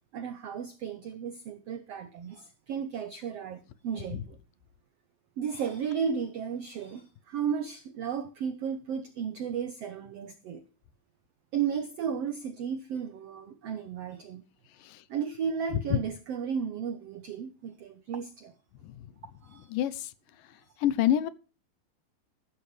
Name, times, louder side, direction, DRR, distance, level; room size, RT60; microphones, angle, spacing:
voice 1, 0.1-4.4 5.4-10.7 11.5-14.4 15.1-18.5 19.4-19.7, right 7 dB, 85° right, 10 dB, 1.3 m, -34 dB
voice 2, 19.7-20.1 20.8-21.3, left 11 dB, 75° left, 16 dB, 2.3 m, -26 dB
14.0 x 12.0 x 3.2 m, 0.34 s
omnidirectional pair, 4.2 m